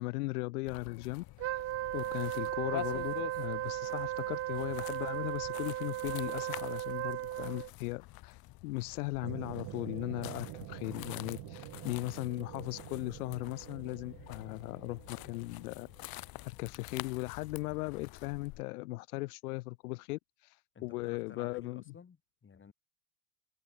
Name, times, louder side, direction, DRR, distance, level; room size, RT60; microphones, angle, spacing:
voice 1, 0.0-1.6 1.9-15.9 16.6-20.6 20.8-21.8, left 22 dB, 90° left, 1.8 m, -38 dB
sound 1, 0.7-18.6, left 18 dB, 55° left, 1.0 m, -48 dB
Wind instrument woodwind instrument, 1.4-7.7, right 14 dB, 35° right, 0.5 m, -36 dB
sound 2, 9.2-16.2 16.5-16.6, right 21 dB, 60° right, 1.5 m, -47 dB
voice 2, 20.7-22.7, left 6 dB, 25° left, 4.2 m, -54 dB
supercardioid pair, 100°, 44 cm